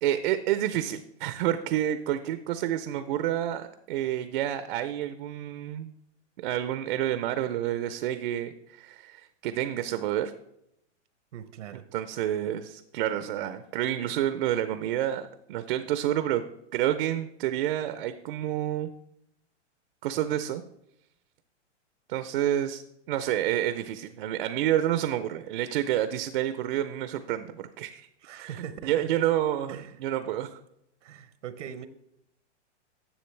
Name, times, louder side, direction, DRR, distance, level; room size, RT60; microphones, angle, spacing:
voice 1, 0.0-5.9 6.4-10.3 11.9-16.4 16.7-18.9 20.0-20.6 22.1-22.8 23.1-28.1 28.3-28.6 28.8-30.6, right 12 dB, 50° right, 11 dB, 0.5 m, -29 dB
voice 2, 11.3-11.9 28.2-29.1 29.7-30.0 31.0-31.9, right 9 dB, 80° right, 12 dB, 0.8 m, -41 dB
10.0 x 7.2 x 3.3 m, 0.80 s
hypercardioid pair, 150°, 36 cm